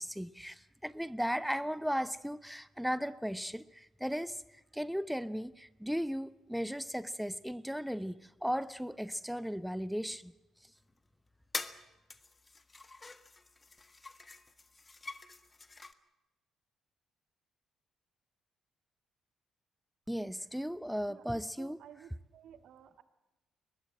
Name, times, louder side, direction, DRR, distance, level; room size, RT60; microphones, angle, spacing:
voice 1, 0.0-10.3 10.6-10.7 20.1-21.8, equal, ahead, 0.8 m, -36 dB
sound 1, 10.9-11.0 11.5-11.8 12.1-15.9, left 3 dB, 30° left, 1.6 m, -45 dB
voice 2, 21.6-23.0, right 9 dB, 65° right, 1.6 m, -54 dB
22.0 x 21.0 x 7.7 m
figure-of-eight pair, 45°, 0 cm